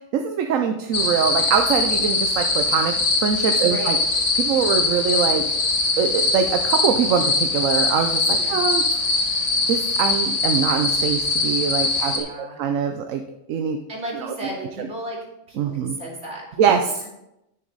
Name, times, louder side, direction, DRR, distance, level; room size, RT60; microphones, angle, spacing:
voice 1, 0.1-2.9 3.2-4.0 4.3-5.4 6.0-9.4 9.7-13.2 13.5-13.8 14.1-14.3 14.8-14.9 15.6-16.0 16.6-17.0, right 7 dB, 85° right, 5 dB, 1.1 m, -23 dB
sound 1, 0.9-12.2, left 3 dB, 70° left, 1.7 m, -22 dB
voice 2, 3.6-4.0 8.4-8.6 11.9-12.6 13.9-15.2 15.5-16.6, right 1 dB, 65° right, -4 dB, 3.1 m, -34 dB
10.5 x 6.8 x 4.0 m, 0.86 s
omnidirectional pair, 1.3 m